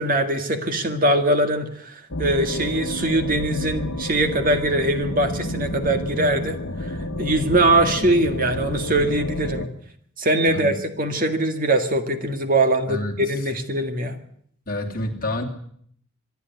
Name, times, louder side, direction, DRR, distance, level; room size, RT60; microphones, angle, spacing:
voice 1, 0.0-9.6 10.2-14.2, right 1 dB, 40° right, 7 dB, 2.0 m, -22 dB
sound 1, 2.1-9.7, left 1 dB, 65° left, 1.5 m, -30 dB
voice 2, 12.9-13.2 14.7-15.4, left 1 dB, 40° left, 1 dB, 2.9 m, -28 dB
25.5 x 11.5 x 9.5 m, 0.65 s
head